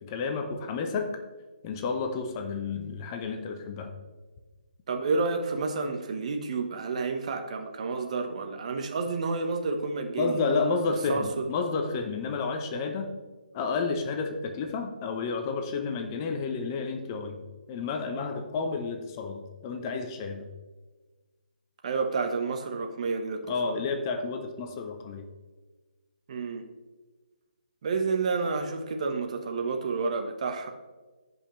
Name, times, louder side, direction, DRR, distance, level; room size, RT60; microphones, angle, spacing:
voice 1, 0.0-1.2 1.6-3.9 10.1-13.2 13.5-17.4 17.7-20.5 23.5-25.3, left 4 dB, 25° left, 6 dB, 0.8 m, -31 dB
voice 2, 4.9-10.4 10.8-11.5 21.8-23.8 26.3-26.6 27.8-30.7, right 4 dB, 45° right, 5 dB, 1.1 m, -30 dB
16.0 x 5.4 x 3.2 m, 1.3 s
figure-of-eight pair, 150°, 5 cm